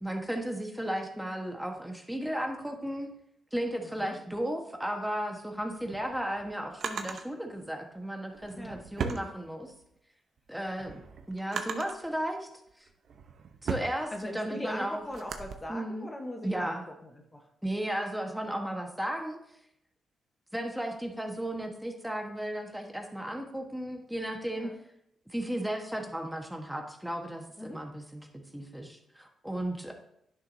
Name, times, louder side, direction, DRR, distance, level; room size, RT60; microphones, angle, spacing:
voice 1, 0.0-3.1 3.5-9.7 10.5-12.5 12.8-12.9 13.6-15.0 15.7-16.1 16.4-16.9 17.6-19.4 20.5-24.7 25.3-28.3 28.5-29.9, right 1 dB, 5° right, 3 dB, 1.4 m, -35 dB
voice 2, 3.8-4.2 8.6-8.8 14.1-17.5 24.5-24.8 27.6-27.8, left 1 dB, 20° left, 3 dB, 1.2 m, -40 dB
Drawer open or close, 5.6-7.3 8.3-9.9 10.4-12.1 12.7-15.5, right 6 dB, 65° right, 0.9 m, -38 dB
10.5 x 6.3 x 2.8 m, 0.76 s
supercardioid pair, 60°, 0 cm